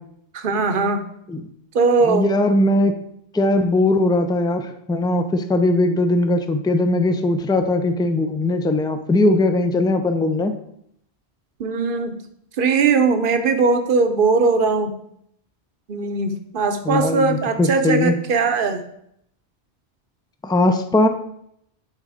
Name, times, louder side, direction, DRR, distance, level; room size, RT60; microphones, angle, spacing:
voice 1, 0.3-1.0 1.7-2.3 11.6-12.2 12.6-14.9 15.9-18.8, right 4 dB, 55° right, 7 dB, 1.0 m, -19 dB
voice 2, 2.0-3.0 3.3-10.6 16.8-18.1 20.4-21.1, left 2 dB, 5° left, 8 dB, 0.4 m, -19 dB
11.5 x 3.9 x 4.8 m, 0.73 s
omnidirectional pair, 1.1 m